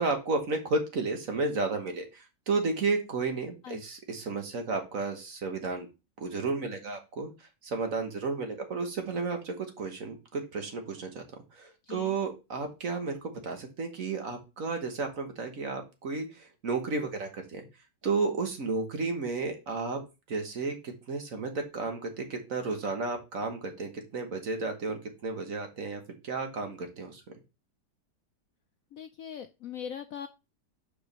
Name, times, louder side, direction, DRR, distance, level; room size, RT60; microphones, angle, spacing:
voice 1, 0.0-5.9 6.2-7.3 7.6-11.2 11.6-17.6 18.0-20.0 20.3-27.2, right 3 dB, 50° right, 5 dB, 1.5 m, -32 dB
voice 2, 28.9-30.3, left 8 dB, 70° left, 8 dB, 0.8 m, -40 dB
5.0 x 4.8 x 5.4 m, 0.27 s
omnidirectional pair, 1.9 m